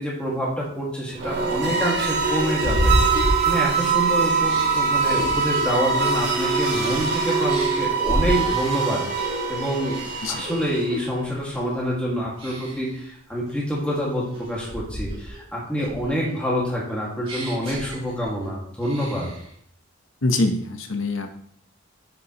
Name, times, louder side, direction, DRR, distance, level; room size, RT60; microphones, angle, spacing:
voice 1, 0.0-3.0 3.4-10.0 10.3-19.3, equal, 5° left, -5 dB, 1.8 m, -27 dB
sound 1, 0.6-0.7 1.2-4.0 4.4-7.1 7.5-8.7 9.2-9.5 9.8-11.1 11.5-11.9 12.4-13.0 13.5-15.4 15.8-18.5 18.8-19.5, equal, 30° right, 2.6 m, -30 dB
sound 2, 1.1-11.1, right 5 dB, 55° right, 1.5 m, -23 dB
voice 2, 20.2-21.3, left 2 dB, 75° left, 6 dB, 0.9 m, -23 dB
7.4 x 6.7 x 2.9 m, 0.66 s
head